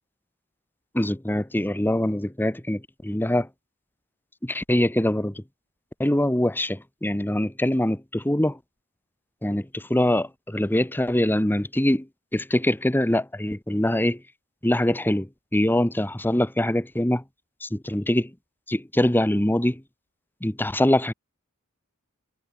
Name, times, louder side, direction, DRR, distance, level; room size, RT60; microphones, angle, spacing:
voice 1, 0.9-3.5 4.4-5.4 6.0-8.6 9.4-12.1 12.3-14.2 14.6-17.2 17.6-18.3 18.7-19.8 20.4-21.1, left 1 dB, 10° left, 1.2 m, -23 dB
head